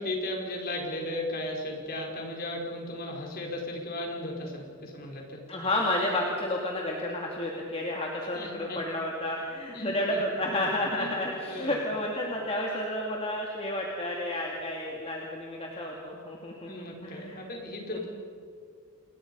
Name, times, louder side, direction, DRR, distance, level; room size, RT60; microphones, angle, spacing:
voice 1, 0.0-5.4 8.3-8.8 9.7-10.5 11.0-11.1 11.5-11.8 16.7-18.1, left 1 dB, 40° left, 1 dB, 4.5 m, -36 dB
voice 2, 5.5-17.4, left 1 dB, 25° left, -1 dB, 2.4 m, -31 dB
28.5 x 21.5 x 5.4 m, 2.2 s
head